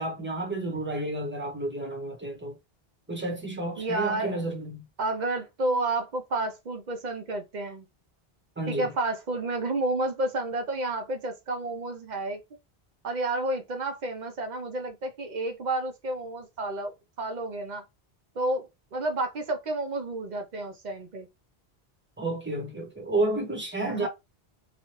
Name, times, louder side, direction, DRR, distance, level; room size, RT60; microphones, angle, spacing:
voice 1, 0.0-2.6 3.1-4.9 8.6-8.9 22.2-24.1, right 2 dB, 10° right, 1.0 m, -31 dB
voice 2, 3.8-4.4 5.0-7.9 8.7-12.4 13.0-16.9 17.2-17.8 18.4-21.3 23.9-24.1, right 2 dB, 50° right, 0.7 m, -30 dB
3.0 x 2.4 x 2.9 m
omnidirectional pair, 1.0 m